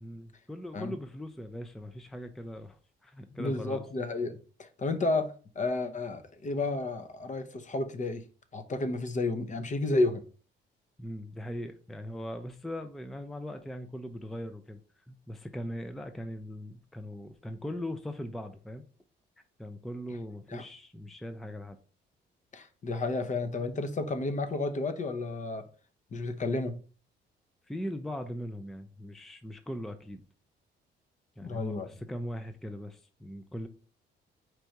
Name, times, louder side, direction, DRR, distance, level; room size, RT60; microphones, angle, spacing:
voice 1, 0.0-3.9 11.0-14.8 15.1-18.8 19.6-21.8 27.7-30.2 31.4-33.7, equal, ahead, 0.4 m, -40 dB
voice 2, 3.4-8.2 8.5-10.2 20.5-20.6 22.5-25.6 26.1-26.8 31.4-31.9, left 2 dB, 40° left, 0.8 m, -31 dB
4.5 x 2.6 x 4.5 m
cardioid pair, 90°, 20 cm